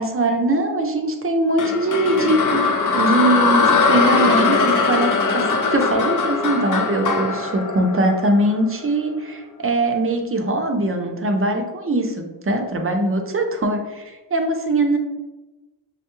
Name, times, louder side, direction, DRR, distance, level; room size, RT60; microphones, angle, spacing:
voice 1, 0.0-15.0, right 1 dB, 30° right, 3 dB, 0.5 m, -21 dB
sound 1, 1.6-8.8, left 4 dB, 45° left, 0.5 m, -20 dB
6.3 x 2.2 x 3.0 m, 1.1 s
wide cardioid pair, 145°, 43 cm